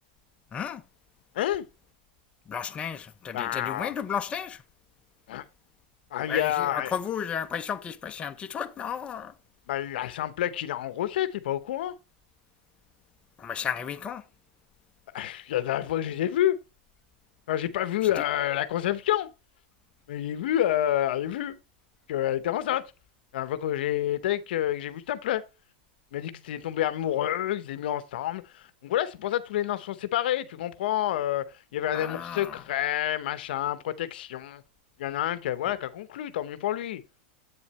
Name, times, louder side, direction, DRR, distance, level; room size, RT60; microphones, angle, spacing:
voice 1, 0.5-0.8 2.5-4.6 6.3-9.3 13.4-14.2 31.9-32.6, left 7 dB, 20° left, 0.7 m, -33 dB
voice 2, 3.3-3.9 5.3-5.4 6.1-6.9 9.7-11.9 15.1-16.6 17.5-19.3 20.1-21.6 22.1-22.8 23.3-25.4 26.1-31.5 31.7-34.6 35.0-37.0, left 12 dB, 70° left, 0.7 m, -28 dB
8.2 x 7.1 x 3.1 m
hypercardioid pair, 130°, 5 cm